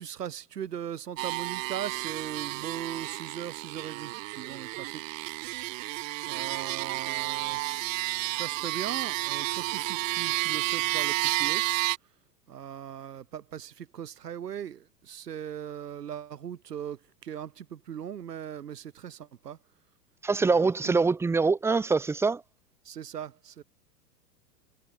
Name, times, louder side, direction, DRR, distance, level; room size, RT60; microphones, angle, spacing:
voice 1, 0.0-5.0 5.5-5.9 6.3-11.8 12.5-19.6 20.5-20.9 22.8-23.6, right 9 dB, 75° right, 5.5 m, -39 dB
sound 1, 1.2-12.0, right 21 dB, 50° right, 2.2 m, -31 dB
voice 2, 20.2-22.4, right 4 dB, 5° right, 0.6 m, -24 dB
figure-of-eight pair, 100°, 49 cm